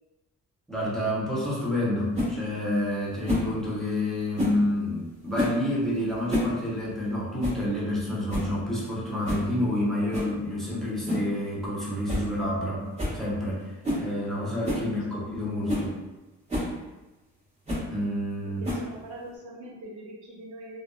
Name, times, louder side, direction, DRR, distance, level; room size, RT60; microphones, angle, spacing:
voice 1, 0.7-12.9 13.1-13.7 14.0-16.0 17.9-18.6, left 1 dB, ahead, -8 dB, 0.8 m, -29 dB
sound 1, 2.1-2.3 3.2-3.5 4.3-4.6 5.3-5.6 6.1-6.5 6.8-6.9 7.4-7.6 8.0-8.1 8.3-8.6 9.2-9.5 10.1-10.3 11.1-11.3 11.6-11.7 12.1-12.3 12.6-12.7 13.0-13.2 13.8-14.1 14.6-14.9 15.3-15.4 15.7-15.9 16.5-16.7 17.7-17.9 18.6-19.0, left 1 dB, 20° right, 1.2 m, -29 dB
voice 2, 18.6-20.8, right 1 dB, 80° right, -3 dB, 0.7 m, -42 dB
2.5 x 2.3 x 2.3 m, 1.1 s
cardioid pair, 90°, 30 cm